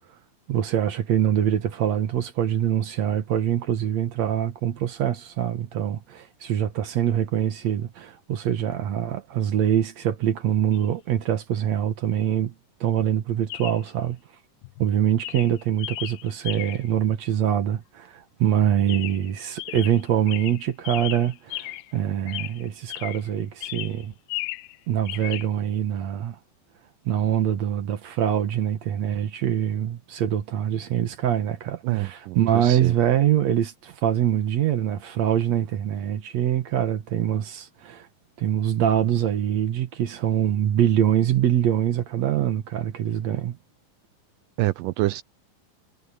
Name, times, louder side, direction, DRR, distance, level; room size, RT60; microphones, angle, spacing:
voice 1, 0.5-12.5 12.8-14.2 14.8-24.1 24.9-26.4 27.1-38.1 38.4-43.6, right 10 dB, 60° right, 2.1 m, -24 dB
Chirp tweet, 10.7-10.9 13.5-13.9 14.6-14.9 15.2-17.0 18.9-19.3 19.6-22.0 22.3-23.3 23.6-24.8 25.1-25.5, left 17 dB, 85° left, 2.4 m, -35 dB
voice 2, 31.8-32.9 44.6-45.2, right 18 dB, 80° right, 2.2 m, -26 dB
omnidirectional pair, 4.1 m